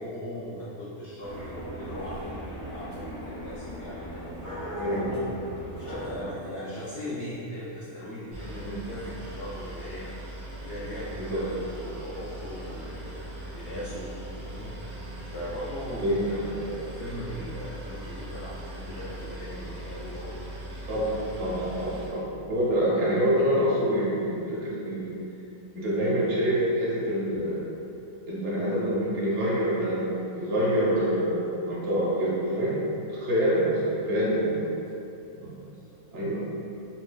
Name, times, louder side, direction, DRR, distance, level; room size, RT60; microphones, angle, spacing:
voice 1, 0.0-5.3 5.8-13.2 13.5-14.1 14.4-14.8 15.3-20.4 34.6-34.7 35.4-35.5, equal, 60° left, -8 dB, 0.7 m, -38 dB
sound 1, 1.2-6.3, equal, 30° left, 0.7 m, -38 dB
voice 2, 4.8-5.1 8.5-8.8 11.2-11.4 16.0-16.4 20.9-25.1 25.7-27.7 28.3-30.0 30.3-32.8 33.1-34.7 35.4-35.6 36.1-36.4, equal, 60° right, -6 dB, 0.9 m, -26 dB
Boat Water vehicle, 8.3-22.1, right 1 dB, 90° right, 1.5 m, -40 dB
5.4 x 2.2 x 2.2 m, 2.7 s
omnidirectional pair, 1.6 m